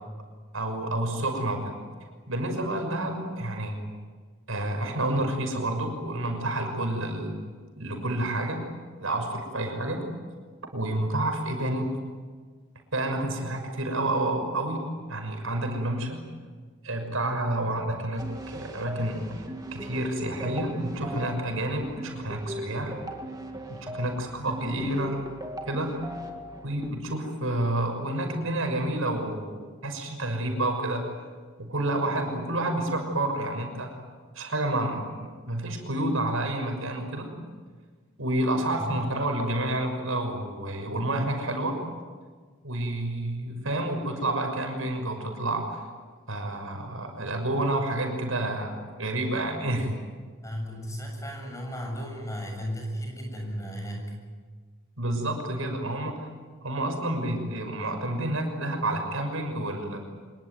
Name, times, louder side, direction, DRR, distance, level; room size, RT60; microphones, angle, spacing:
voice 1, 0.5-1.8 2.3-3.8 4.5-7.4 7.8-8.6 9.0-10.1 10.7-12.0 12.9-16.2 16.8-19.4 19.7-22.9 23.7-25.3 25.7-26.0 26.6-31.0 31.6-33.9 34.3-37.3 38.2-41.8 42.6-45.8 46.3-49.9 55.0-56.3 56.6-60.0, right 1 dB, 75° right, 4 dB, 6.2 m, -29 dB
sound 1, 18.2-26.9, equal, 15° right, 2.1 m, -39 dB
voice 2, 50.4-54.1, equal, 15° left, 1 dB, 7.2 m, -35 dB
25.5 x 23.0 x 9.4 m, 1.5 s
head